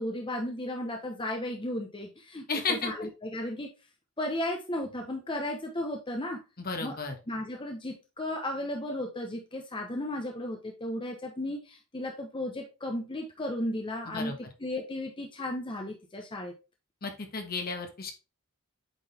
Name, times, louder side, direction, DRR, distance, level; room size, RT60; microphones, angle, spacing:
voice 1, 0.0-3.7 4.2-6.4 6.8-7.0 7.3-16.5, left 1 dB, 25° left, 2 dB, 0.9 m, -35 dB
voice 2, 2.5-3.1 6.6-7.1 14.1-14.4 17.0-18.1, left 4 dB, 45° left, 5 dB, 1.4 m, -33 dB
8.1 x 3.9 x 3.4 m, 0.29 s
head